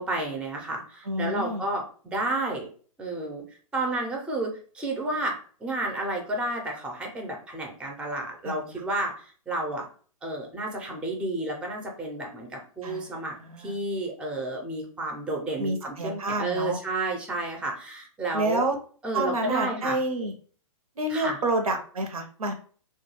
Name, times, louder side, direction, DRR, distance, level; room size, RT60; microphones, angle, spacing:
voice 1, 0.0-2.7 3.0-3.4 3.7-9.9 10.2-18.6 19.0-20.0 21.1-21.4, right 2 dB, 5° right, 1 dB, 0.4 m, -31 dB
voice 2, 1.1-1.6 8.4-8.8 12.8-13.7 15.6-16.8 18.3-18.8 19.1-20.3 21.0-22.5, right 1 dB, 85° right, 4 dB, 0.7 m, -29 dB
2.3 x 2.2 x 3.0 m, 0.43 s
hypercardioid pair, 125°, 18 cm